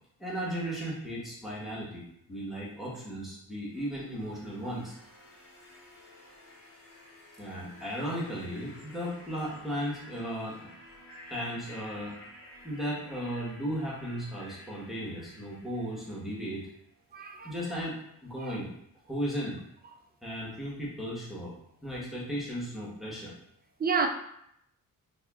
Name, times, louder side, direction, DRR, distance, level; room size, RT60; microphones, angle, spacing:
voice 1, 0.2-2.0 2.3-5.0 7.4-10.7 11.3-12.2 12.6-16.7 17.4-18.0 18.2-18.7 19.1-19.6 20.2-21.5 21.8-23.3, equal, ahead, 1.2 m, -35 dB
sound 1, 3.7-16.7, left 1 dB, 70° left, 1.5 m, -52 dB
voice 2, 17.1-17.8 18.4-18.6 23.8-24.1, right 5 dB, 25° right, 0.4 m, -30 dB
5.4 x 2.7 x 2.3 m
cardioid pair, 95°, 35 cm